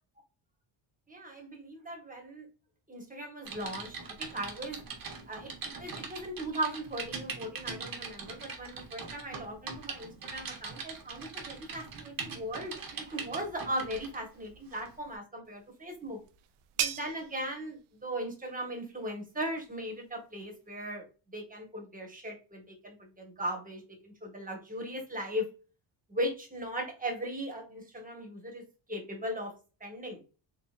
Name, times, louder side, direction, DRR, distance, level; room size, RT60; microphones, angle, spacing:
voice 1, 1.1-2.5 2.9-4.8 5.3-16.2 16.8-25.5 26.1-28.6 28.9-29.5 29.8-30.2, equal, 15° right, 1 dB, 1.4 m, -38 dB
Typing, 3.4-14.2 14.7-14.9, right 5 dB, 45° right, 1.1 m, -42 dB
sound 1, 15.4-20.9, right 10 dB, 80° right, 0.6 m, -41 dB
3.9 x 3.3 x 2.4 m, 0.33 s
cardioid pair, 90°, 49 cm